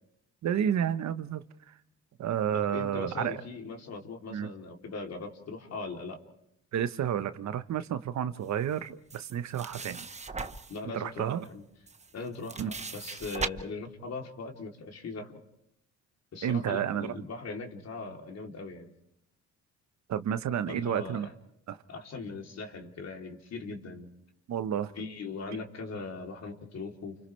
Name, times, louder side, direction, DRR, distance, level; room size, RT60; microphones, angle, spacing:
voice 1, 0.4-1.4 2.2-3.4 4.3-4.5 6.7-10.1 10.9-11.4 12.6-12.7 16.4-17.1 20.1-21.3 21.7-21.8 24.5-24.9, right 9 dB, 65° right, 1.2 m, -30 dB
voice 2, 2.5-6.2 10.7-11.6 12.1-15.3 16.3-18.9 20.7-21.3 21.9-24.1 25.0-27.2, left 4 dB, 55° left, 3.6 m, -40 dB
sound 1, 9.1-10.8 11.4-11.5 11.9-13.5, right 4 dB, 20° right, 1.1 m, -38 dB
29.5 x 29.5 x 3.4 m
cardioid pair, 90°, 30 cm